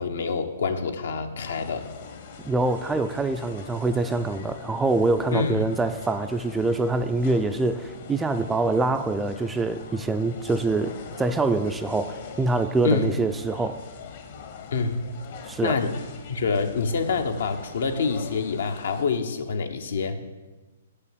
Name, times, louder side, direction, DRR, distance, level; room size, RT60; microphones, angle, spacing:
voice 1, 0.0-1.9 5.3-5.6 12.8-13.1 14.7-15.0 15.6-15.9 16.3-20.2, left 4 dB, 70° left, 7 dB, 1.0 m, -26 dB
sound 1, 1.4-19.0, left 6 dB, 50° left, 1.2 m, -42 dB
voice 2, 2.4-13.8 15.4-15.8, right 3 dB, 10° right, 9 dB, 0.4 m, -25 dB
6.8 x 6.8 x 7.4 m, 1.2 s
hypercardioid pair, 140°, 0 cm